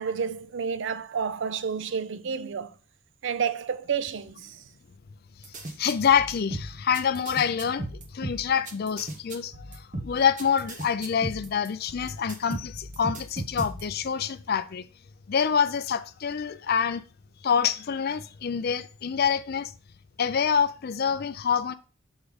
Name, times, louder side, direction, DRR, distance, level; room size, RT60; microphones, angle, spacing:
voice 1, 0.0-2.7 3.2-4.5, right 6 dB, 60° right, 0.4 m, -30 dB
sound 1, 5.4-14.1, right 1 dB, 35° right, 0.8 m, -36 dB
voice 2, 5.8-7.9 8.1-14.9 15.3-17.0 17.4-19.7 20.2-21.7, left 7 dB, 45° left, 0.4 m, -26 dB
6.4 x 3.6 x 4.8 m
head